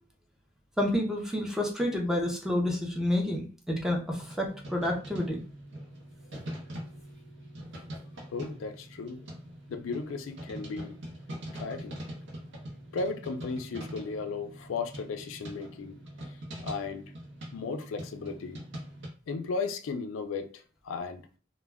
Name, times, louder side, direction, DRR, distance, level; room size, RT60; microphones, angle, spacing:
voice 1, 0.8-5.4, left 1 dB, 5° right, 0.5 m, -29 dB
sound 1, 4.1-19.1, equal, 65° right, 0.8 m, -43 dB
voice 2, 8.3-9.2 9.7-10.9 11.5-12.0 12.9-16.0 16.2-16.4 16.6-17.1 17.5-18.6 19.3-21.2, left 4 dB, 70° left, 0.4 m, -35 dB
2.1 x 2.1 x 3.3 m
head